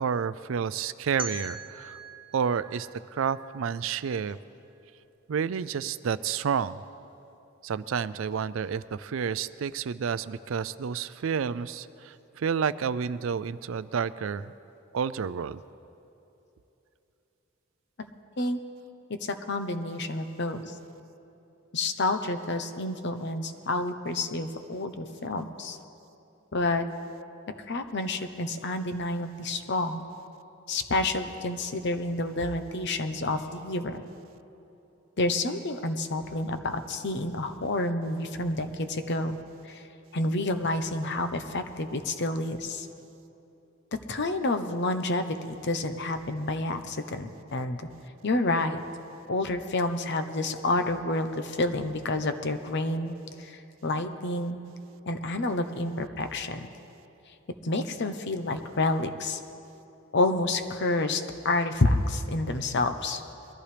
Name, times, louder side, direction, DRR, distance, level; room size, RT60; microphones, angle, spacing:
voice 1, 0.0-2.0 2.3-4.4 5.3-6.8 7.6-14.5 14.9-15.6, right 7 dB, 65° right, 16 dB, 0.4 m, -30 dB
sound 1, 1.2-4.1, right 3 dB, 25° right, 1.2 m, -42 dB
voice 2, 19.2-20.7 21.7-25.8 26.5-26.8 27.7-30.1 30.7-34.0 35.2-39.4 39.6-39.8 40.1-42.9 44.1-47.8 48.2-48.8 49.3-54.6 55.1-56.6 57.6-59.4 60.1-63.2, left 2 dB, 55° left, 8 dB, 0.8 m, -29 dB
22.0 x 14.0 x 3.4 m, 2.9 s
head